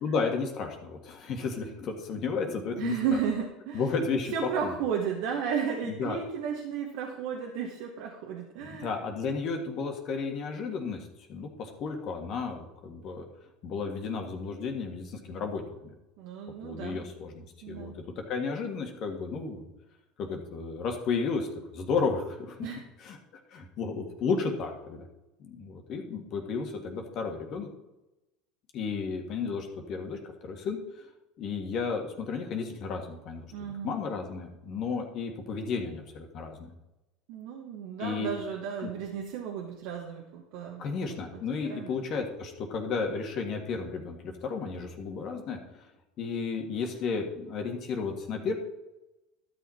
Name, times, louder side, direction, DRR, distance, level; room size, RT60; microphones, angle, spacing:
voice 1, 0.0-3.2 3.7-4.3 4.6-4.8 5.8-6.2 8.6-13.3 13.6-15.9 16.6-17.9 18.3-19.7 20.2-21.5 21.7-22.7 23.0-23.2 23.5-25.0 25.4-27.7 28.7-31.0 31.4-33.5 33.8-36.7 38.0-38.3 40.8-45.6 46.2-48.5, left 5 dB, 50° left, 2 dB, 1.8 m, -33 dB
voice 2, 2.8-3.8 4.3-8.9 16.2-17.0 17.6-17.9 22.6-22.8 33.5-34.0 37.3-40.8 41.3-41.4 41.7-41.9, right 7 dB, 70° right, 0 dB, 1.3 m, -33 dB
12.0 x 6.4 x 4.4 m, 0.96 s
hypercardioid pair, 85°, 0 cm